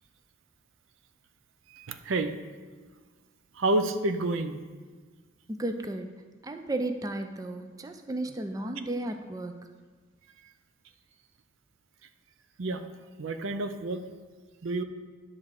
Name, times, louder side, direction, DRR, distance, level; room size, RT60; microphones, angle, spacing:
voice 1, 1.7-2.3 3.5-4.6 12.6-12.8 13.2-14.1 14.6-14.8, right 2 dB, 80° right, 9 dB, 0.5 m, -29 dB
voice 2, 5.5-6.1 6.4-9.6, right 1 dB, 20° right, 6 dB, 0.4 m, -34 dB
10.5 x 3.6 x 6.5 m, 1.4 s
head